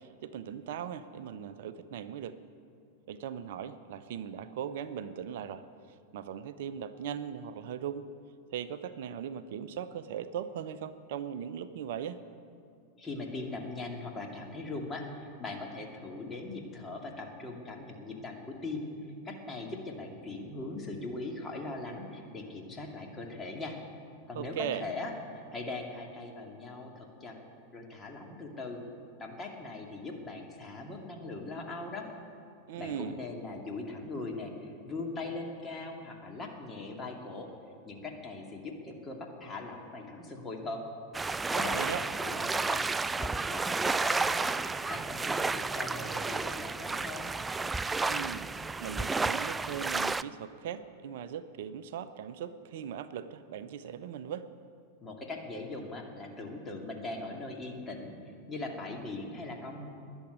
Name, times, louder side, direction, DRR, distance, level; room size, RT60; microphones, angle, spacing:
voice 1, 0.0-2.4 3.1-5.6 6.1-8.1 8.5-12.2 24.3-24.8 32.7-33.2 41.7-42.0 48.1-48.5 48.8-54.5, right 8 dB, 55° right, 12 dB, 0.7 m, -39 dB
voice 2, 13.0-18.9 19.2-23.8 24.3-27.4 27.7-28.8 29.2-32.1 32.8-37.5 37.8-40.8 41.5-42.9 43.2-44.5 44.9-47.3 55.0-58.2 58.5-59.9, left 2 dB, 20° left, 1 dB, 2.5 m, -40 dB
sound 1, 41.1-50.2, right 3 dB, 10° right, 0.3 m, -31 dB
20.0 x 7.2 x 9.5 m, 2.4 s
figure-of-eight pair, 90°, 0 cm